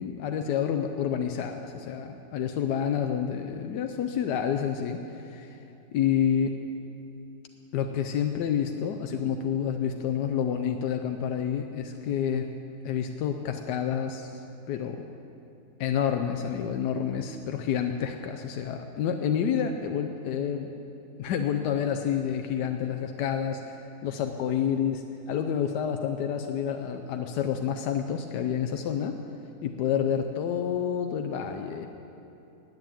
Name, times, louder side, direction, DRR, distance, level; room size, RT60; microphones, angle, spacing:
voice 1, 0.0-5.6 5.9-6.6 7.7-12.5 12.8-14.3 14.7-15.0 15.8-20.7 21.2-29.2 29.6-31.9, left 8 dB, 85° left, 5 dB, 1.2 m, -29 dB
9.7 x 9.4 x 8.8 m, 2.9 s
omnidirectional pair, 1.7 m